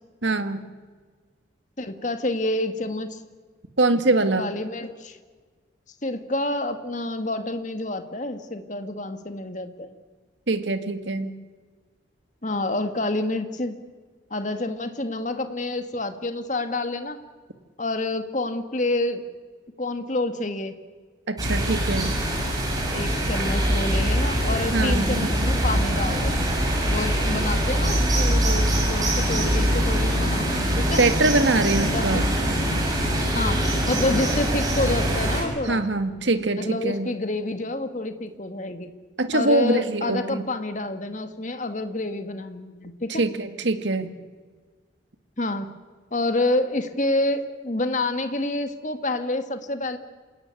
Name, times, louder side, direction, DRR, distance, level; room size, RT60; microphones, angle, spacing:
voice 1, 0.2-0.6 3.8-4.5 10.5-11.3 21.3-22.1 24.7-25.1 31.0-32.3 35.6-37.1 39.2-40.4 43.2-44.1, right 2 dB, 80° right, 9 dB, 1.9 m, -23 dB
voice 2, 1.8-3.2 4.4-5.2 6.0-9.9 12.4-13.8 14.3-17.2 17.8-19.2 19.8-20.8 22.9-26.5 26.9-31.0 31.8-32.4 33.3-35.8 36.6-38.9 39.3-43.2 45.4-45.7 46.1-50.0, left 2 dB, 40° left, 8 dB, 1.8 m, -28 dB
sound 1, 21.4-35.4, equal, 20° right, 7.2 m, -23 dB
28.0 x 18.0 x 9.7 m, 1.5 s
head